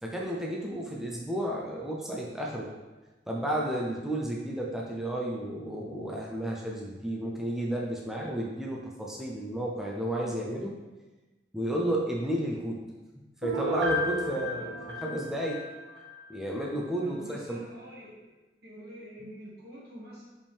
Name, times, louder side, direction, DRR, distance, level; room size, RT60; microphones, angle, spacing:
voice 1, 0.0-2.7 3.3-10.7 11.5-12.8 13.4-14.7 15.0-15.6 16.3-17.6, right 1 dB, ahead, -3 dB, 0.6 m, -32 dB
Piano, 13.4-16.1 16.5-16.6, left 1 dB, 75° right, 1.3 m, -33 dB
voice 2, 14.3-14.9 17.0-18.2 18.6-20.2, equal, 60° right, -6 dB, 1.9 m, -47 dB
5.2 x 5.2 x 3.5 m, 1.2 s
head